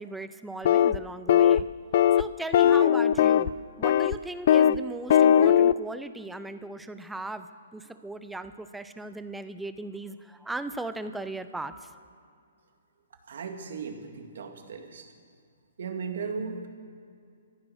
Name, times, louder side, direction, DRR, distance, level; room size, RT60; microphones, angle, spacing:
voice 1, 0.0-1.7 2.2-3.5 3.8-11.9, right 2 dB, 5° right, 11 dB, 0.5 m, -38 dB
sound 1, 0.6-1.0 1.3-1.6 1.9-2.2 2.5-3.5 3.8-4.1 4.5-4.8 5.1-5.7, left 9 dB, 50° left, 0.3 m, -19 dB
voice 2, 13.3-15.1 15.8-16.7, right 5 dB, 70° right, 4 dB, 2.2 m, -36 dB
14.5 x 14.5 x 6.4 m, 2.3 s
hypercardioid pair, 150°, 0 cm